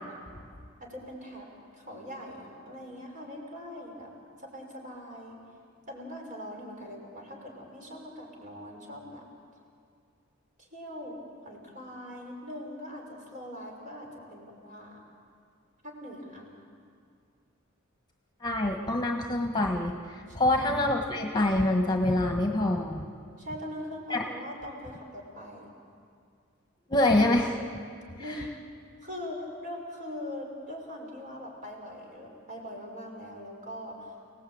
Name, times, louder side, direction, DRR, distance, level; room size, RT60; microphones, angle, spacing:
voice 1, 0.8-4.1 4.4-5.4 5.9-9.2 10.6-15.0 15.8-16.5 20.3-20.7 23.4-25.7 27.0-27.1 28.2-28.5 29.0-34.1, left 1 dB, 40° right, 0 dB, 5.6 m, -41 dB
voice 2, 18.4-23.0 24.1-24.2 26.9-27.5 28.3-28.4, left 1 dB, 20° left, 3 dB, 1.5 m, -26 dB
29.5 x 18.5 x 8.8 m, 2.3 s
head